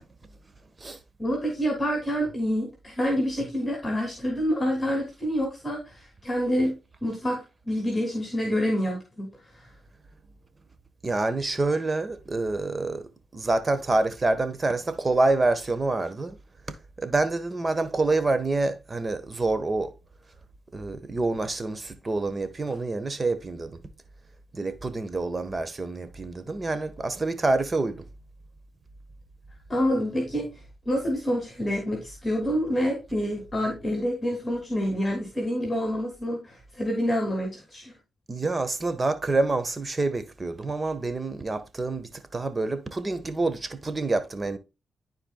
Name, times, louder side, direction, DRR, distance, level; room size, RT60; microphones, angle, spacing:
voice 1, 1.2-9.3 9.6-9.7 29.7-30.5 30.8-37.9, equal, 25° left, 2.8 m, -27 dB
voice 2, 11.0-16.4 17.0-19.9 20.7-23.8 24.5-28.0 38.3-44.6, right 2 dB, 35° right, 1.3 m, -27 dB
13.5 x 4.6 x 2.3 m
supercardioid pair, 50°, 0 cm